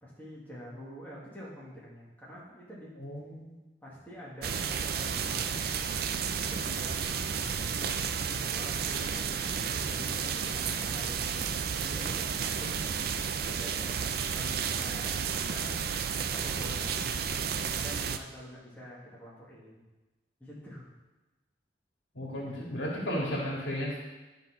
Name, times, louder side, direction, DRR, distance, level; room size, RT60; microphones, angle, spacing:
voice 1, 0.0-3.0 3.8-5.9 6.5-8.0 8.3-12.9 13.5-15.2 15.5-15.8 16.2-17.1 17.7-19.9 20.4-20.9, equal, 10° left, -7 dB, 1.8 m, -46 dB
voice 2, 3.0-3.6 22.1-24.0, equal, 85° left, -3 dB, 2.0 m, -34 dB
sound 1, 4.4-18.2, right 6 dB, 55° right, 0.5 m, -32 dB
10.5 x 4.1 x 5.8 m, 1.1 s
head